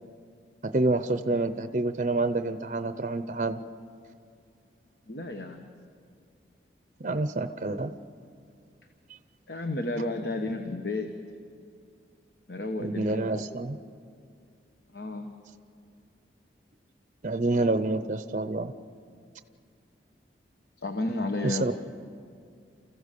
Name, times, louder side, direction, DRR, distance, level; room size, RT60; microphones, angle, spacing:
voice 1, 0.6-3.6 7.0-7.9 12.8-13.8 17.2-18.7 21.4-21.7, right 2 dB, 40° right, 10 dB, 0.6 m, -28 dB
voice 2, 5.1-5.7 9.5-11.1 12.5-13.5 14.9-15.3 20.8-21.7, left 2 dB, 60° left, 5 dB, 1.1 m, -32 dB
29.0 x 15.0 x 6.7 m, 2.3 s
head